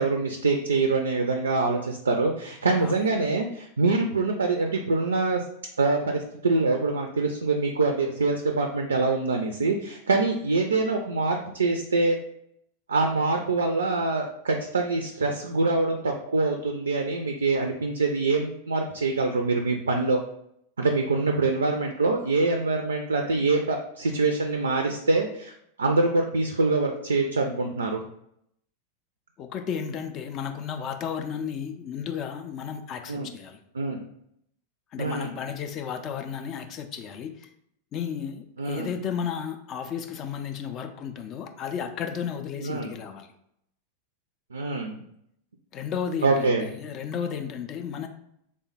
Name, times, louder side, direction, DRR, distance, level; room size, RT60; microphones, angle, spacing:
voice 1, 0.0-5.4 5.8-12.2 12.9-20.2 20.8-25.5 25.8-28.0 33.1-33.3 33.8-34.0 35.0-35.3 38.6-38.9 42.6-43.0 44.5-45.0 46.2-46.7, right 3 dB, 70° right, 4 dB, 0.3 m, -25 dB
voice 2, 29.4-33.6 34.9-37.5 37.9-43.3 45.7-48.1, left 7 dB, 35° left, 6 dB, 0.3 m, -33 dB
3.3 x 2.1 x 4.0 m, 0.74 s
figure-of-eight pair, 90°, 0 cm